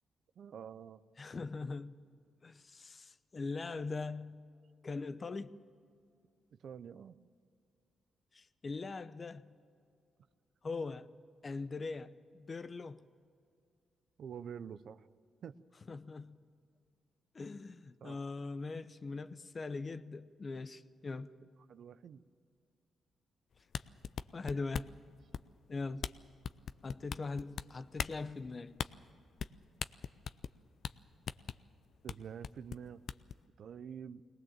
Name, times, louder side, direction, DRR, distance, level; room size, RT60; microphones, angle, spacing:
voice 1, 0.4-1.0 6.5-7.2 14.2-15.1 15.4-15.6 18.0-18.2 21.7-22.2 32.0-33.0 33.6-34.2, right 7 dB, 65° right, 0.6 m, -47 dB
voice 2, 1.2-2.0 2.4-4.4 4.8-5.6 8.3-9.5 10.6-11.1 11.4-13.0 15.9-16.4 17.3-21.3 24.3-24.9 25.7-26.1 26.8-28.7, left 3 dB, 35° left, 0.8 m, -41 dB
sound 1, 23.6-25.0 25.3-25.7 26.0-26.1 26.4-27.6 28.0-28.2 28.8-28.9 29.4-29.5 29.8-30.6 30.8-30.9 31.3-31.6 32.1-32.2 32.4-33.3, left 7 dB, 65° left, 0.5 m, -39 dB
21.5 x 19.0 x 7.3 m
cardioid pair, 85°, 0 cm